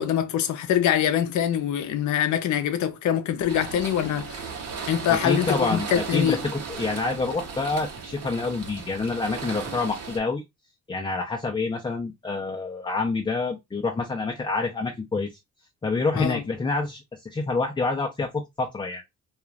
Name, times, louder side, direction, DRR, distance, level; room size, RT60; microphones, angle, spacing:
voice 1, 0.0-4.5 4.9-6.4 16.1-16.4, left 10 dB, 75° left, 0.6 m, -24 dB
sound 1, 3.5-10.2, right 5 dB, 55° right, 0.9 m, -36 dB
voice 2, 5.1-10.4 10.9-15.4 15.8-19.0, left 3 dB, 15° left, 0.5 m, -27 dB
2.4 x 2.4 x 3.1 m
cardioid pair, 90°, 30 cm